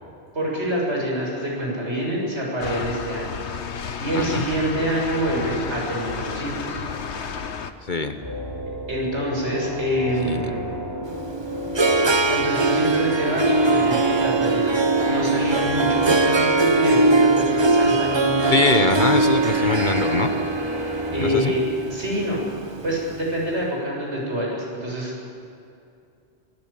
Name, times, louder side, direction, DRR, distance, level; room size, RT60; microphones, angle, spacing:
voice 1, 0.3-3.3 4.0-6.8 8.9-10.8 12.3-18.6 21.1-22.4 22.8-25.1, equal, 75° right, -3 dB, 7.9 m, -26 dB
sound 1, 2.6-7.7, left 6 dB, 75° left, 1.4 m, -32 dB
voice 2, 4.1-4.5 7.9-8.2 10.2-10.8 18.5-20.3 21.2-21.5, left 3 dB, 45° left, 7 dB, 1.4 m, -23 dB
sound 2, 8.2-21.4, right 1 dB, 20° left, 7.1 m, -32 dB
Harp, 11.1-23.2, right 3 dB, 25° right, 0.8 m, -21 dB
24.5 x 20.0 x 8.8 m, 2.5 s
omnidirectional pair, 1.2 m